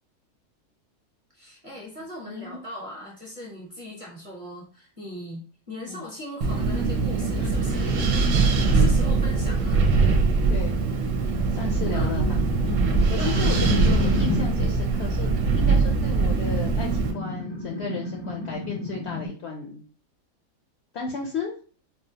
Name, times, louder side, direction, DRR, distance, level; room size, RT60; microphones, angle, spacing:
voice 1, 1.3-8.0 8.7-9.8 11.9-12.2 13.2-13.8, left 1 dB, 30° right, -3 dB, 0.8 m, -39 dB
voice 2, 2.2-2.6 5.9-6.1 7.3-7.5 10.5-10.8 11.5-12.4 13.1-19.8 20.9-21.5, left 4 dB, 65° left, 1 dB, 0.6 m, -34 dB
Wind, 6.4-17.1, right 4 dB, 65° right, 0.9 m, -22 dB
sound 1, 11.4-14.7 16.5-19.3, left 1 dB, 15° left, 0.4 m, -31 dB
4.0 x 2.1 x 2.7 m, 0.40 s
omnidirectional pair, 1.5 m